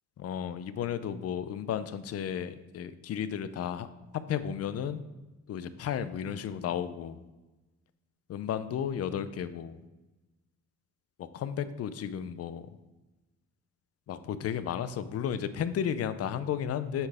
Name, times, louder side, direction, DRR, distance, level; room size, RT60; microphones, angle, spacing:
voice 1, 0.2-3.9 4.1-5.0 5.5-7.2 8.3-9.8 11.2-12.7 14.1-17.1, left 9 dB, 55° left, 13 dB, 0.5 m, -33 dB
7.9 x 3.9 x 3.6 m, 1.1 s
cardioid pair, 90°, 30 cm